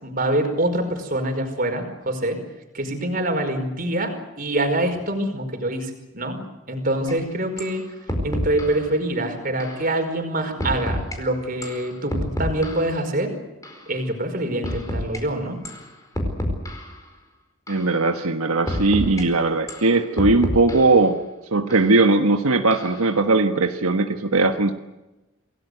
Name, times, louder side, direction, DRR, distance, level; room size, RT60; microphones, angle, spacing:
voice 1, 0.0-2.4 2.7-6.4 6.7-7.9 8.2-13.3 13.9-15.6, right 1 dB, 40° right, 6 dB, 5.0 m, -25 dB
sound 1, 7.1-7.2 7.6-7.8 8.1-8.8 9.6-9.8 10.6-11.2 11.6-13.0 13.6-13.8 14.6-15.2 15.7-15.9 16.2-17.0 17.7-17.9 18.7-19.2 19.7-21.0 21.7-21.9 22.7-23.1, left 1 dB, 15° left, 4.7 m, -28 dB
voice 2, 17.7-21.2 21.5-24.7, right 3 dB, 85° right, 6 dB, 1.4 m, -19 dB
28.0 x 18.5 x 8.1 m, 1.0 s
head